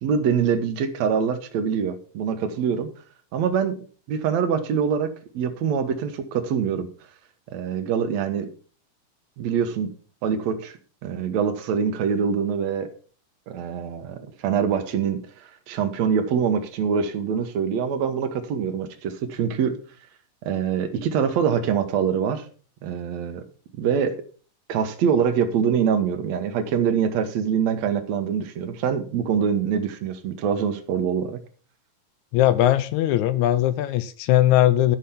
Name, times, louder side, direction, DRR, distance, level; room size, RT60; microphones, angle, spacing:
voice 1, 0.0-2.9 3.3-3.8 4.1-6.9 7.5-8.5 9.4-9.9 10.2-12.9 13.5-15.2 15.7-19.8 20.4-22.5 22.8-23.4 23.8-24.2 24.7-31.4, right 7 dB, 60° right, 7 dB, 2.3 m, -24 dB
voice 2, 32.3-35.0, left 13 dB, 80° left, 14 dB, 1.8 m, -19 dB
12.5 x 6.3 x 5.7 m, 0.40 s
omnidirectional pair, 4.0 m